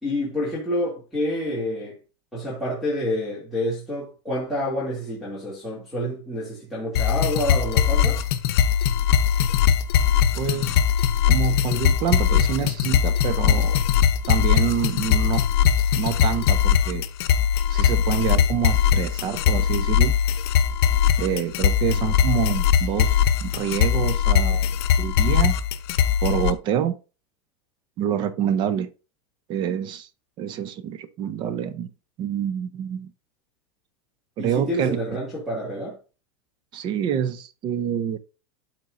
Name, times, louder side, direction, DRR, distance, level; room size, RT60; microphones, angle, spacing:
voice 1, 0.0-2.0 2.3-8.2 34.4-36.0, left 1 dB, ahead, 2.6 m, -28 dB
sound 1, 7.0-26.5, left 8 dB, 65° left, 0.8 m, -20 dB
voice 2, 10.4-10.8 11.3-13.8 14.3-15.5 16.0-17.0 17.7-20.1 21.2-24.7 25.0-25.6 26.2-27.0 28.0-28.9 29.5-30.1 30.4-31.9 32.2-33.1 34.4-35.0 36.7-38.2, right 9 dB, 35° right, 0.7 m, -27 dB
12.5 x 4.4 x 2.6 m
supercardioid pair, 160°, 14 cm